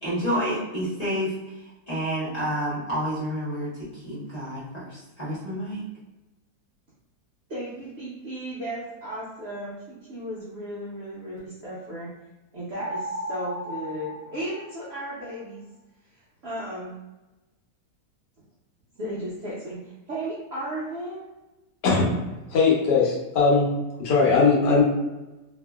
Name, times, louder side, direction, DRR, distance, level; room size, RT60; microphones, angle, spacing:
voice 1, 0.0-5.8, equal, 25° left, -10 dB, 0.9 m, -29 dB
voice 2, 7.5-12.1 12.5-15.6 16.1-17.0 18.9-21.2, right 1 dB, 85° right, -8 dB, 0.5 m, -35 dB
sound 1, 12.8-15.2, equal, 15° right, 0.5 m, -35 dB
voice 3, 21.8-23.7 24.0-24.8, left 4 dB, 75° left, -4 dB, 1.3 m, -20 dB
2.8 x 2.6 x 2.2 m, 1.1 s
omnidirectional pair, 1.9 m